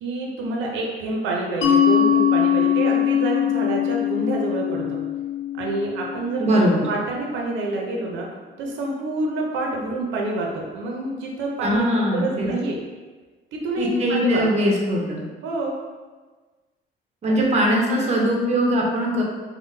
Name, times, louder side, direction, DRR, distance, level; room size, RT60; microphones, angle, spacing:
voice 1, 0.0-5.0 5.6-6.6 6.9-8.3 8.6-12.8 13.5-14.5 15.4-15.8 17.3-17.5, right 2 dB, 85° right, -1 dB, 0.6 m, -27 dB
Mallet percussion, 1.6-7.0, left 8 dB, 70° left, 0.6 m, -22 dB
voice 2, 6.4-6.9 11.6-12.5 13.8-15.2 17.2-19.2, equal, 35° right, -2 dB, 0.6 m, -21 dB
3.7 x 2.1 x 2.6 m, 1.3 s
cardioid pair, 110°, 19 cm